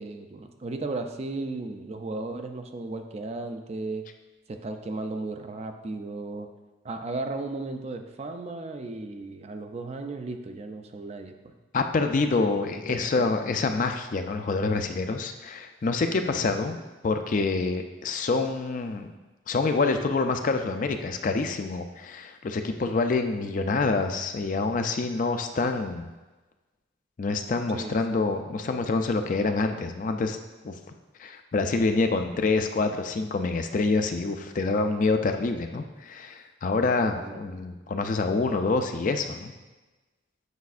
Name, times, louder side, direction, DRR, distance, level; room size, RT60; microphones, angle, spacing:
voice 1, 0.0-4.1 4.5-6.5 6.8-11.5 12.4-12.8 13.1-13.4 16.2-16.8 27.7-28.2 37.1-37.6, right 2 dB, 35° right, 6 dB, 0.4 m, -35 dB
voice 2, 11.7-16.8 17.0-19.1 19.5-26.1 27.2-30.4 30.6-30.8 31.2-39.5, left 3 dB, 45° left, 6 dB, 0.4 m, -26 dB
8.1 x 5.1 x 2.4 m, 1.2 s
head